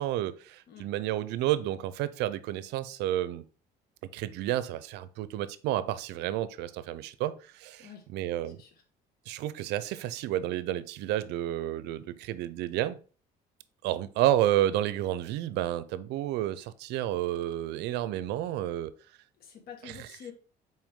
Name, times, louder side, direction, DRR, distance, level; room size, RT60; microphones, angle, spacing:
voice 1, 0.0-3.4 4.1-8.6 9.3-13.0 13.8-18.9 19.8-20.1, right 13 dB, 90° right, 0.5 m, -30 dB
voice 2, 19.4-20.3, left 8 dB, 65° left, 1.6 m, -47 dB
6.0 x 4.5 x 3.6 m
cardioid pair, 110°, 17 cm